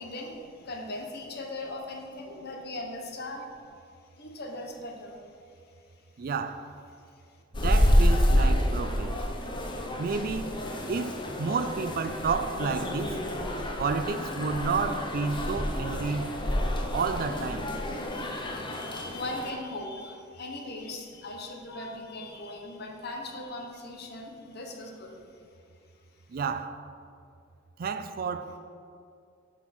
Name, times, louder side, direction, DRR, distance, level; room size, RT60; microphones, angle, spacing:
voice 1, 0.0-3.5 4.2-5.2 16.8-16.9 18.0-25.2, left 2 dB, 55° left, 1.1 m, -39 dB
voice 2, 6.2-6.7 7.5-9.2 10.0-10.5 10.9-13.2 13.8-16.4 16.9-17.7 26.3-26.8 27.8-28.6, right 4 dB, 50° right, 0.4 m, -30 dB
sound 1, 7.5-19.5, equal, 25° left, 0.7 m, -28 dB
7.8 x 4.5 x 6.0 m
head